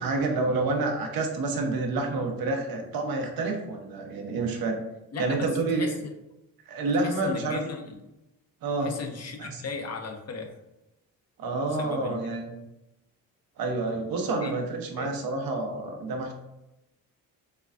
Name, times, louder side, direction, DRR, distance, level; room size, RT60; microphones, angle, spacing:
voice 1, 0.0-4.8 5.2-5.9 6.7-7.6 8.6-8.9 9.4-9.6 11.4-12.5 13.6-16.3, right 3 dB, 75° right, 2 dB, 0.9 m, -28 dB
voice 2, 5.1-5.5 5.8-6.1 7.0-7.9 8.8-10.5 11.8-12.2 14.4-14.5 15.0-15.1, left 4 dB, 45° left, 4 dB, 0.8 m, -36 dB
6.6 x 2.3 x 2.5 m, 0.92 s
cardioid pair, 85°, 35 cm